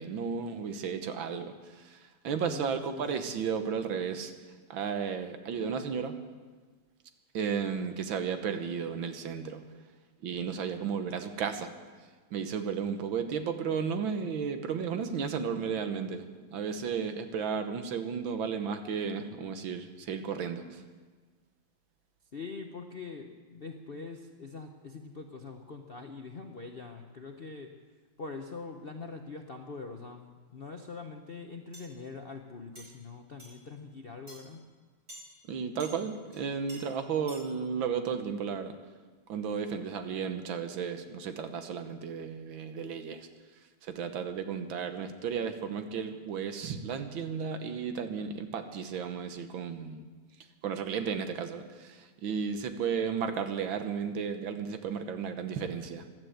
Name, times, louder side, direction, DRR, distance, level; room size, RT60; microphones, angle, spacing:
voice 1, 0.0-1.5 2.2-4.3 4.7-6.1 7.3-9.6 10.2-11.7 12.3-16.2 16.5-20.6 35.5-38.7 39.3-43.3 44.0-50.0 50.6-52.0 52.2-56.0, right 6 dB, 75° right, 8 dB, 1.8 m, -33 dB
voice 2, 2.5-3.3 22.3-27.7 28.2-34.6, left 4 dB, 50° left, 3 dB, 0.7 m, -43 dB
sound 1, 31.7-31.9 32.8-32.9 33.4-33.6 34.3-34.4 35.1-35.3 35.8-36.0 36.3-36.4 36.7-36.8 37.3-37.4, right 1 dB, 35° right, 5.1 m, -47 dB
15.5 x 12.0 x 7.8 m, 1.4 s
omnidirectional pair, 2.2 m